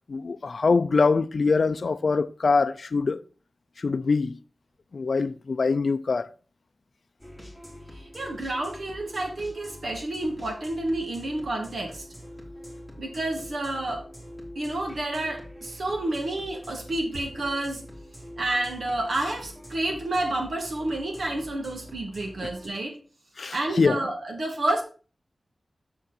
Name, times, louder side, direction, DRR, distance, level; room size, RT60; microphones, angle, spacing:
voice 1, 0.1-3.2 3.8-4.4 4.9-6.3 23.4-24.0, left 4 dB, 70° left, 0.4 m, -23 dB
sound 1, 7.2-22.7, equal, 10° right, 3.4 m, -44 dB
voice 2, 7.9-12.1 13.0-14.1 14.6-17.8 18.4-23.0 23.5-24.8, right 1 dB, 75° right, 2.1 m, -29 dB
7.0 x 6.5 x 4.1 m
cardioid pair, 55°, 0 cm